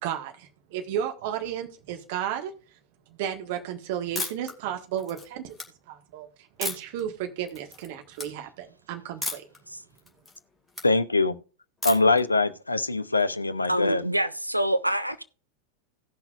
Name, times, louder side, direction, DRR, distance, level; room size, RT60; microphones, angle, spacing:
voice 1, 0.0-2.5 3.1-5.5 5.9-6.3 6.6-9.4, right 10 dB, 50° right, 1.6 m, -33 dB
sound 1, 4.1-4.5 5.0-5.6 6.6-7.0 7.5-7.9 8.1-8.3 9.2-9.6 9.9-10.9 11.8-12.2, left 2 dB, 5° left, 2.1 m, -33 dB
voice 2, 10.8-11.3 11.8-14.0, left 3 dB, 80° left, 0.6 m, -23 dB
voice 3, 13.7-15.2, right 1 dB, 90° right, 0.6 m, -26 dB
17.5 x 6.0 x 2.5 m
figure-of-eight pair, 90°, 0 cm